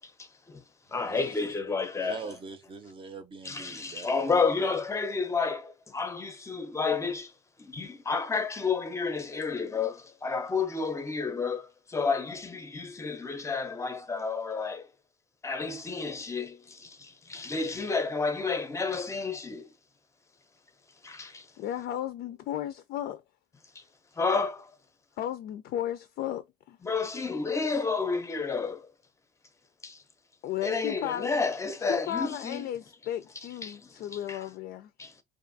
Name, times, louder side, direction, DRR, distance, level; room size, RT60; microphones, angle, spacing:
voice 1, 0.2-0.6 0.9-2.2 3.4-7.3 7.6-14.9 15.4-19.7 21.0-21.5 24.2-24.7 26.8-28.9 29.8-30.0 30.6-32.7 33.6-33.8 34.3-34.4 35.0-35.1, left 4 dB, 15° left, 0.6 m, -30 dB
voice 2, 0.9-1.4 2.0-4.3, right 5 dB, 30° right, 0.6 m, -43 dB
voice 3, 21.6-23.2 25.2-26.8 30.4-31.3 31.8-34.9, left 11 dB, 70° left, 0.4 m, -34 dB
2.6 x 2.4 x 2.6 m
cardioid pair, 110°, 17 cm